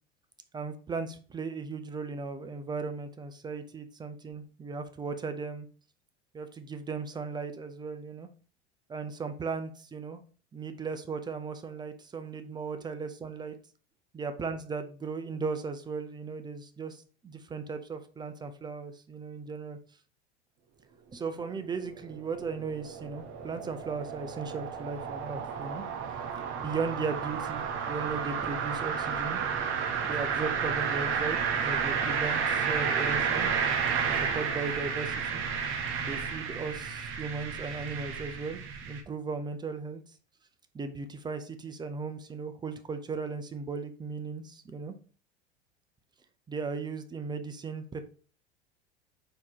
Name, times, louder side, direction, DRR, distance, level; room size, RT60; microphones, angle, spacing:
voice 1, 0.5-5.7 6.3-8.3 8.9-10.2 10.5-13.5 14.1-19.8 21.1-25.8 26.6-29.4 30.0-33.5 34.2-35.4 36.0-40.0 40.7-44.9 46.5-48.0, right 4 dB, 15° right, 9 dB, 0.5 m, -37 dB
sound 1, 21.4-39.0, right 6 dB, 35° right, 0.8 m, -32 dB
4.2 x 2.9 x 4.1 m, 0.41 s
hypercardioid pair, 80°, 34 cm